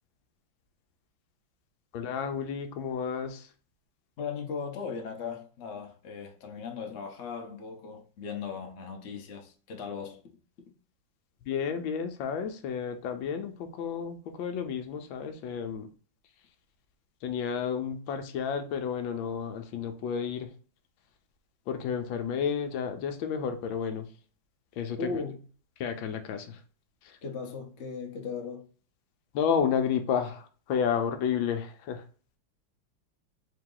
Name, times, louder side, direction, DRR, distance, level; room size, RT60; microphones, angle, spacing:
voice 1, 1.9-3.5 11.4-15.9 17.2-20.5 21.7-24.1 24.8-25.2 25.8-26.6 27.0-27.2 29.3-32.0, left 7 dB, 80° left, 1.3 m, -31 dB
voice 2, 4.2-10.2 25.0-25.4 27.2-28.7, left 5 dB, 60° left, 0.7 m, -37 dB
3.8 x 2.8 x 3.7 m
omnidirectional pair, 2.2 m